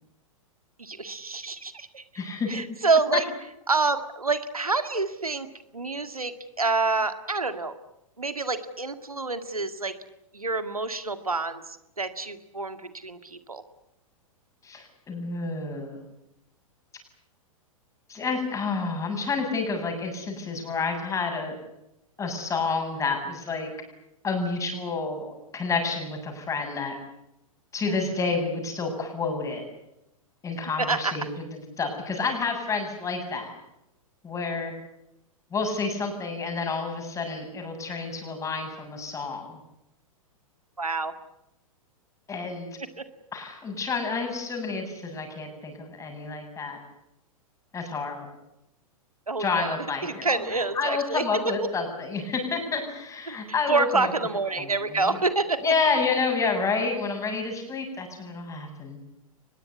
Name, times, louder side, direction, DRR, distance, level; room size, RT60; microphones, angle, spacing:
voice 1, 0.8-2.0 2.5-3.3 3.7-5.5 5.7-7.7 8.2-9.9 10.3-13.6 30.8-31.2 40.8-41.1 43.0-43.1 49.3-49.8 50.0-51.7 53.3-53.4 53.7-55.7, right 3 dB, 80° right, 11 dB, 1.9 m, -27 dB
voice 2, 2.1-2.5 3.1-3.2 14.6-16.0 18.1-21.6 22.2-23.7 24.2-27.0 27.7-29.7 30.4-33.6 34.2-34.7 35.5-39.6 42.3-42.7 43.3-46.8 47.7-48.3 49.4-54.1 54.6-55.2 55.6-59.0, left 4 dB, 15° left, 4 dB, 7.8 m, -29 dB
24.0 x 21.0 x 9.6 m, 0.86 s
figure-of-eight pair, 105°, 18 cm